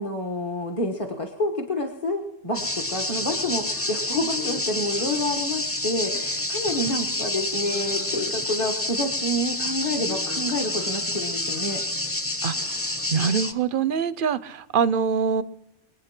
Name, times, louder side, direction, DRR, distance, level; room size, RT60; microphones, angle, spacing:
voice 1, 0.0-11.8, left 1 dB, 30° left, 3 dB, 1.4 m, -28 dB
sound 1, 2.5-13.5, left 1 dB, 15° left, 0.8 m, -28 dB
voice 2, 12.4-12.8 13.1-15.4, right 6 dB, 55° right, 15 dB, 0.8 m, -24 dB
23.0 x 9.2 x 6.0 m, 0.87 s
omnidirectional pair, 1.2 m